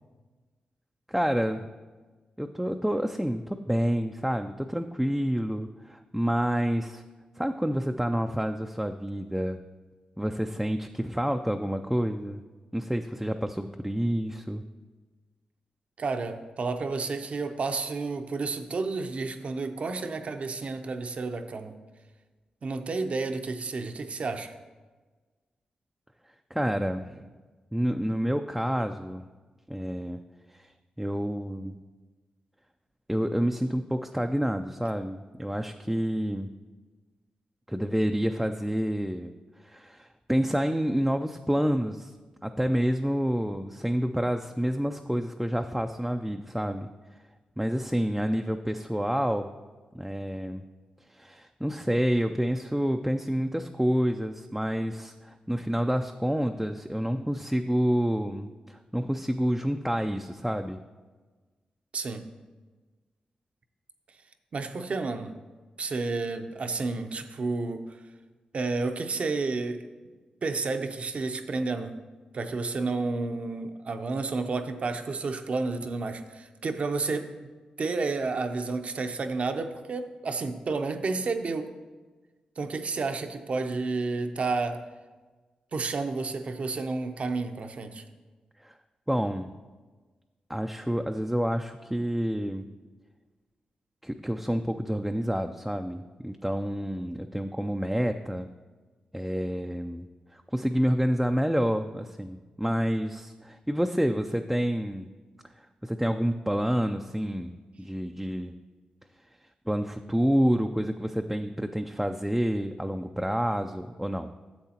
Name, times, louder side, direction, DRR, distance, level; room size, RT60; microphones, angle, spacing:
voice 1, 1.1-1.7 2.4-7.0 7.4-9.6 10.2-12.4 12.7-14.6 26.5-27.3 27.7-29.2 29.7-30.2 30.5-30.7 31.0-31.7 33.1-36.5 37.7-39.3 39.6-42.1 42.4-46.9 47.6-49.5 49.9-50.6 51.1-60.8 88.6-88.7 89.1-89.6 90.5-92.7 94.0-98.5 99.1-100.1 100.3-105.1 105.8-107.5 107.8-108.5 109.7-114.3, equal, 5° right, 5 dB, 0.4 m, -28 dB
voice 2, 16.0-21.8 22.6-24.5 61.9-62.3 64.5-65.3 65.8-67.8 68.5-69.8 70.4-72.0 72.3-77.3 77.8-81.7 82.6-84.8 85.7-88.0, right 3 dB, 55° right, 8 dB, 0.6 m, -31 dB
10.5 x 7.3 x 2.9 m, 1.3 s
cardioid pair, 60°, 3 cm